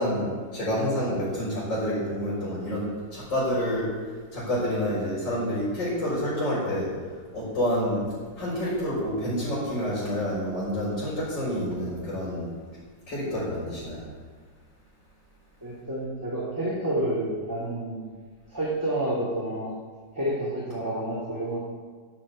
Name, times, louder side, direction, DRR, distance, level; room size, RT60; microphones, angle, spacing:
voice 1, 0.0-3.9 4.3-6.9 7.3-8.0 8.4-12.5 13.1-14.0, equal, 85° left, -9 dB, 5.6 m, -28 dB
voice 2, 15.6-18.2 18.5-19.7 20.1-21.6, right 1 dB, 10° right, -7 dB, 2.5 m, -29 dB
15.0 x 7.9 x 8.5 m, 1.5 s
omnidirectional pair, 1.9 m